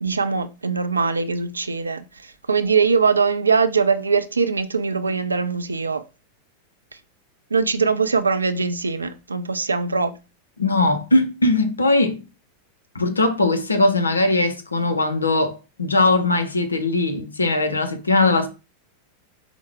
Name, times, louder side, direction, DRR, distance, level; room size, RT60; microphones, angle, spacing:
voice 1, 0.0-6.0 7.5-10.1 18.1-18.2, right 5 dB, 75° right, 0.3 m, -22 dB
voice 2, 10.6-12.2 12.9-18.5, left 2 dB, 80° left, 0.6 m, -20 dB
4.7 x 2.1 x 3.3 m
figure-of-eight pair, 90°, 0 cm